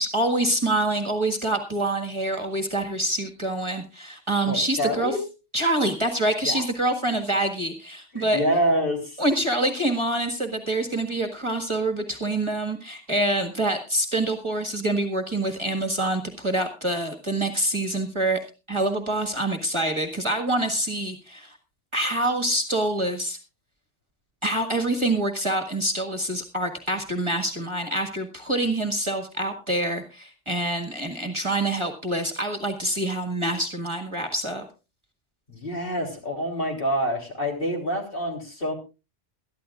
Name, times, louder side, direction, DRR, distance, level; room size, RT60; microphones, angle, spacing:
voice 1, 0.0-5.2 5.5-8.4 9.2-18.4 18.7-21.6 21.9-23.4 24.4-34.6, right 1 dB, 25° right, 5 dB, 1.7 m, -26 dB
voice 2, 4.5-5.2 6.4-6.7 8.1-9.2 35.5-38.7, equal, 50° left, 1 dB, 3.6 m, -26 dB
22.0 x 13.0 x 2.4 m, 0.30 s
omnidirectional pair, 1.2 m